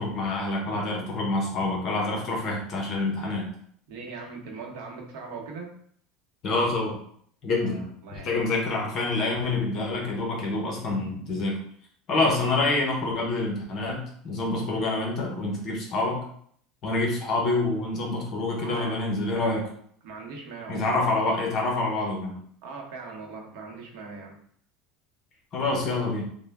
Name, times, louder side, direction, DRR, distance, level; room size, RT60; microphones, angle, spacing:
voice 1, 0.0-3.5 6.4-7.0 7.4-7.8 8.1-11.6 12.1-16.2 16.8-19.6 20.7-22.4 25.5-26.2, left 2 dB, 35° left, 0 dB, 0.8 m, -27 dB
voice 2, 3.9-5.7 7.7-8.5 12.2-12.3 18.6-19.0 20.0-20.9 22.6-24.4, right 4 dB, 60° right, 0 dB, 0.8 m, -40 dB
3.4 x 2.1 x 3.4 m, 0.62 s
cardioid pair, 170°, 0 cm